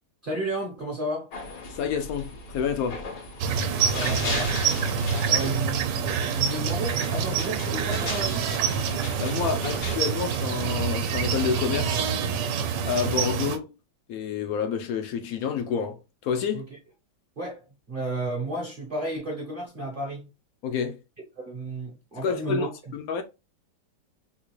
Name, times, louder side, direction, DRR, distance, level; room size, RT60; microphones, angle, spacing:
voice 1, 0.2-1.3 3.8-4.6 5.2-8.5 16.5-16.6 17.4-20.3 21.3-22.7, right 1 dB, 40° right, 0.8 m, -33 dB
sound 1, 1.3-10.0, left 2 dB, 85° left, 1.8 m, -37 dB
voice 2, 1.7-3.0 9.2-12.1 12.9-13.7 14.1-16.7 20.6-21.0 22.2-23.2, left 6 dB, 70° left, 0.8 m, -29 dB
sound 2, 3.4-13.6, right 7 dB, 75° right, 1.2 m, -26 dB
3.7 x 2.4 x 2.9 m
omnidirectional pair, 1.9 m